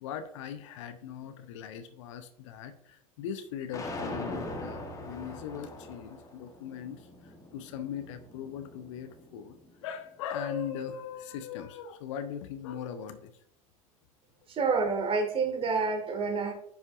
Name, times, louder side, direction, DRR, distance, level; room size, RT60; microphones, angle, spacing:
voice 1, 0.0-13.3, left 8 dB, 60° left, 10 dB, 0.7 m, -39 dB
sound 1, 3.7-9.9, left 2 dB, 20° left, 1.3 m, -42 dB
voice 2, 14.5-16.5, right 4 dB, 30° right, 5 dB, 1.5 m, -28 dB
9.9 x 5.3 x 2.5 m, 0.68 s
figure-of-eight pair, 80°, 18 cm